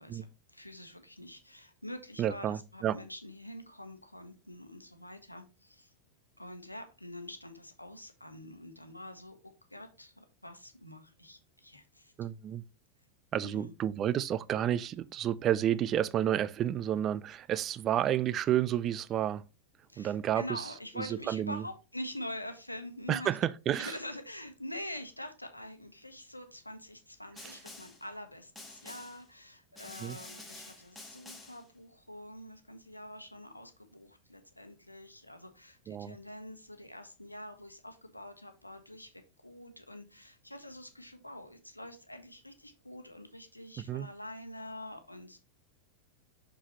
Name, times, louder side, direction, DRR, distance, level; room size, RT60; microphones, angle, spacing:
voice 1, 0.0-5.9 6.4-12.1 13.4-13.7 19.9-23.3 23.8-45.4, left 1 dB, 85° left, 1.0 m, -45 dB
voice 2, 2.2-3.0 12.2-12.6 13.3-19.4 20.0-20.6 21.0-21.6 23.1-23.9 27.4-27.5 30.0-30.2 35.9-36.2 43.9-44.1, right 11 dB, 30° right, 0.4 m, -31 dB
Snare drum, 27.4-28.1 28.6-29.3 29.8-31.7, left 2 dB, 5° left, 1.5 m, -49 dB
6.1 x 5.7 x 3.0 m
figure-of-eight pair, 90°, 0 cm